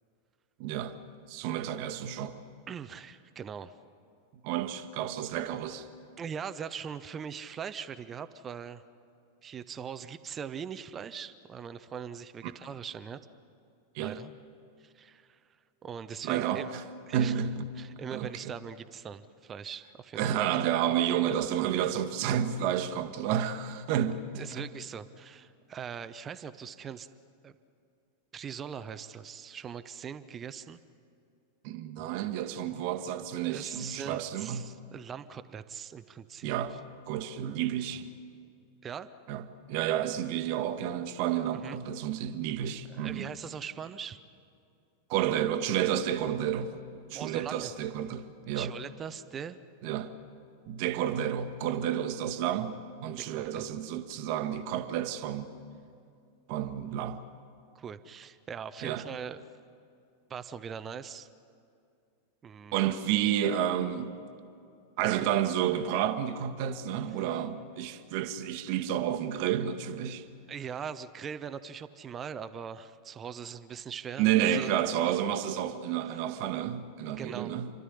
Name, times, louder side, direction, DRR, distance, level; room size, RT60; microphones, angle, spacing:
voice 1, 0.6-1.0 1.3-2.4 4.4-5.9 12.4-12.5 13.9-14.2 16.2-16.8 17.1-18.5 20.1-24.7 31.6-34.7 36.4-36.8 37.1-38.1 39.3-43.3 45.1-46.7 47.1-48.7 49.8-50.1 50.7-55.5 56.5-57.2 58.8-59.0 62.7-64.2 65.0-70.2 74.2-77.7, right 10 dB, 45° right, 1.3 m, -30 dB
voice 2, 2.7-3.7 6.2-8.8 9.4-13.2 14.0-14.3 14.8-15.4 15.8-16.7 17.1-17.4 17.7-20.4 24.4-27.1 27.4-27.5 28.3-30.8 33.5-36.5 38.8-39.1 41.6-41.8 42.9-44.2 47.1-47.7 48.5-49.6 52.5-52.6 53.3-53.7 57.7-59.4 60.3-61.3 62.4-62.8 67.3-67.4 70.5-74.7 77.1-77.5, right 7 dB, 25° right, 0.8 m, -41 dB
29.0 x 12.5 x 10.0 m
figure-of-eight pair, 90°, 0 cm